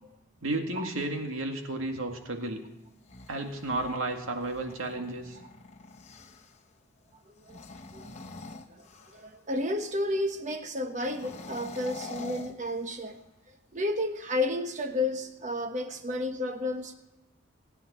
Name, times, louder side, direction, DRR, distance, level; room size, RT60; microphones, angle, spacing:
voice 1, 0.4-2.6 3.3-5.4, right 2 dB, 80° right, 3 dB, 2.1 m, -32 dB
sound 1, 2.9-6.6 7.4-9.4 11.0-13.3, left 3 dB, 30° left, 1.0 m, -46 dB
voice 2, 9.1-13.2 13.7-16.9, left 1 dB, 35° right, 6 dB, 1.2 m, -31 dB
25.0 x 9.4 x 4.3 m, 1.0 s
head